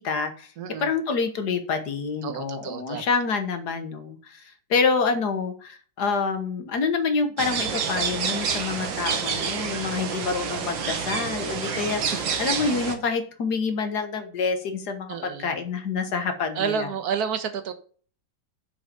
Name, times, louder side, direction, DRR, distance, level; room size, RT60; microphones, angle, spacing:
voice 1, 0.0-0.5 0.8-16.9, left 5 dB, 60° left, 7 dB, 1.9 m, -27 dB
voice 2, 0.6-0.9 2.2-3.0 15.1-15.5 16.6-17.7, right 7 dB, 60° right, 9 dB, 1.6 m, -29 dB
sound 1, 7.4-12.9, right 6 dB, 90° right, 2.1 m, -28 dB
8.2 x 5.9 x 6.8 m, 0.42 s
omnidirectional pair, 2.0 m